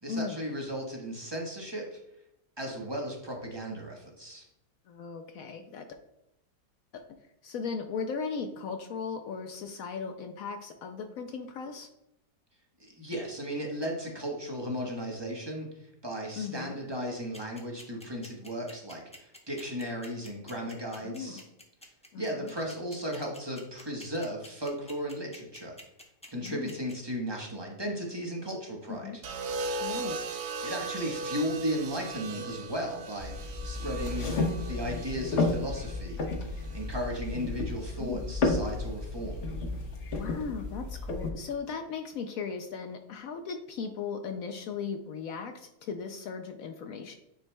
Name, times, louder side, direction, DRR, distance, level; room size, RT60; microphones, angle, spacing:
voice 1, 0.0-2.0 2.6-4.4 12.8-15.7 16.0-21.4 22.2-25.7 26.3-29.2 30.6-34.3 34.7-39.4, equal, 20° right, 0 dB, 0.9 m, -35 dB
voice 2, 4.9-5.9 6.9-7.0 7.4-11.9 16.4-16.7 21.0-21.5 22.1-22.5 26.4-26.7 28.9-29.2 29.8-30.2 38.0-38.2 40.1-47.1, left 5 dB, 70° left, 6 dB, 0.9 m, -37 dB
sound 1, 17.3-26.9, left 1 dB, 10° left, 0.4 m, -48 dB
sound 2, 29.2-37.4 38.6-39.0, right 4 dB, 65° right, 0.6 m, -39 dB
sound 3, 33.2-41.3, left 3 dB, 50° left, 1.2 m, -32 dB
9.3 x 4.6 x 2.2 m, 0.84 s
omnidirectional pair, 1.7 m